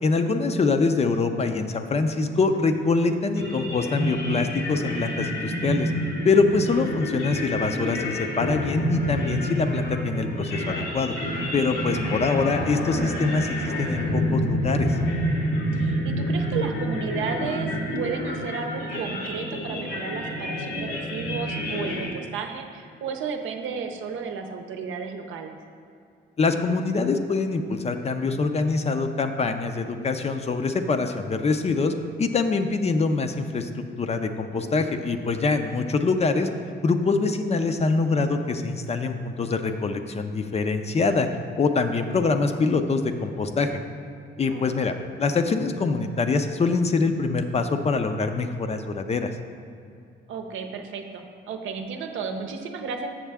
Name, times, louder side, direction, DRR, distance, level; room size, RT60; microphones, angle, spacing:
voice 1, 0.0-5.9 6.2-11.1 11.5-15.0 26.4-36.5 36.8-41.3 41.6-43.7 44.4-49.3, left 4 dB, 30° left, 7 dB, 0.5 m, -24 dB
sound 1, 3.4-22.1, equal, 85° left, 1.2 m, -28 dB
voice 2, 15.7-25.6 44.5-44.6 50.3-53.2, right 5 dB, 80° right, 4 dB, 0.7 m, -33 dB
7.3 x 6.5 x 3.4 m, 2.4 s
cardioid pair, 90°, 20 cm